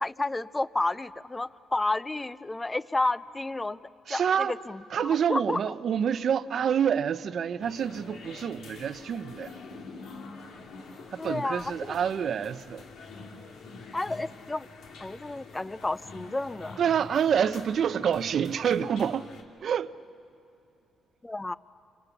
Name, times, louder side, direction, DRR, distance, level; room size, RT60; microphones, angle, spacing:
voice 1, 0.0-3.8 4.1-5.7 11.2-12.0 13.9-14.7 15.0-16.8 21.2-21.6, left 2 dB, 15° left, 0.6 m, -31 dB
voice 2, 4.1-4.5 4.9-9.5 11.1-12.8 16.8-19.3 19.6-19.9, right 8 dB, 60° right, 0.7 m, -27 dB
sound 1, 7.6-19.4, left 4 dB, 80° left, 2.7 m, -46 dB
28.5 x 25.0 x 7.2 m
cardioid pair, 90°, 0 cm